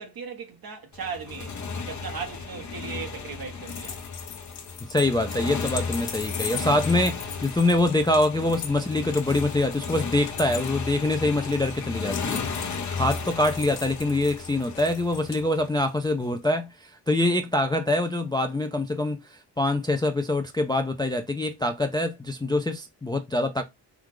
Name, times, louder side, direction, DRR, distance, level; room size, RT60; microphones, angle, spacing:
voice 1, 0.0-1.6 1.8-4.0, right 5 dB, 55° right, 1.3 m, -37 dB
Motorcycle, 0.9-16.1, left 5 dB, 45° left, 0.8 m, -34 dB
sound 1, 3.7-15.4, left 8 dB, 80° left, 1.2 m, -40 dB
voice 2, 4.9-12.4 12.9-23.6, left 2 dB, 10° left, 0.3 m, -25 dB
4.6 x 2.3 x 3.6 m
wide cardioid pair, 170°, 42 cm